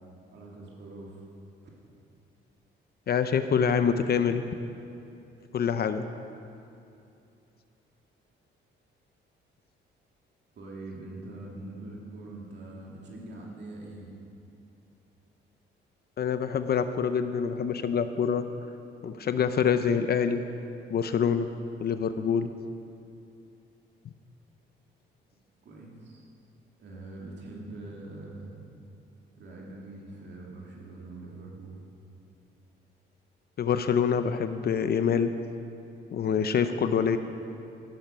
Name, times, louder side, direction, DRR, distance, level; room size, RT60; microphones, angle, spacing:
voice 1, 0.3-1.3 10.6-14.1 25.6-26.2 26.8-28.5 29.4-31.8, right 2 dB, 60° right, -2 dB, 2.4 m, -43 dB
voice 2, 3.1-4.4 5.5-6.0 16.2-18.4 19.0-20.4 20.9-21.5 21.8-22.5 33.6-35.3 36.1-37.2, left 7 dB, 55° left, 10 dB, 0.7 m, -26 dB
13.5 x 11.5 x 5.9 m, 2.7 s
cardioid pair, 90°, 20 cm